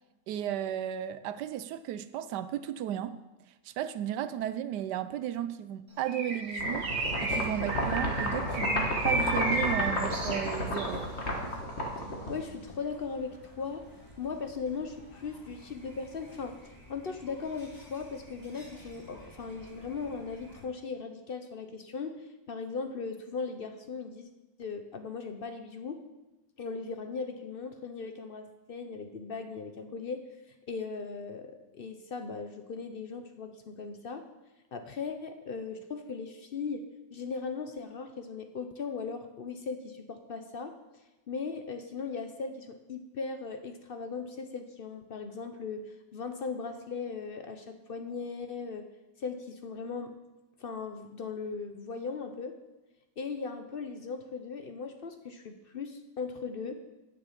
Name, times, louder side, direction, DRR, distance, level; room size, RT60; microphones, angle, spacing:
voice 1, 0.3-3.2 3.6-6.9 7.2-11.0, right 11 dB, 75° right, 13 dB, 1.1 m, -34 dB
Bird, 6.1-11.0, right 2 dB, 55° right, 2.0 m, -33 dB
Wobbly sound, 6.6-12.7, equal, 40° left, 1.7 m, -32 dB
sound 1, 6.9-20.7, equal, 10° left, 1.6 m, -52 dB
voice 2, 12.3-13.8 14.2-24.3 24.6-26.0 26.6-34.3 34.7-36.8 37.1-40.8 41.3-48.8 49.2-50.1 50.6-52.5 53.2-56.8, left 5 dB, 60° left, 7 dB, 0.6 m, -38 dB
10.5 x 6.3 x 7.4 m, 1.0 s
omnidirectional pair, 1.9 m